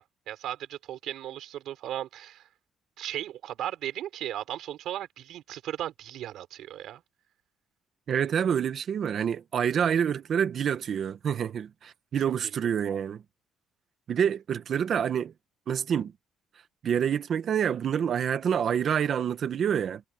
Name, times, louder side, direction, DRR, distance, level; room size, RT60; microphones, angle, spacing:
voice 1, 0.0-2.5 3.0-7.0 9.8-9.9, right 12 dB, 60° right, 5.2 m, -36 dB
voice 2, 8.1-13.2 14.1-15.3 15.7-16.1 16.8-20.0, right 8 dB, 40° right, 1.3 m, -27 dB
cardioid pair, 160°, 0 cm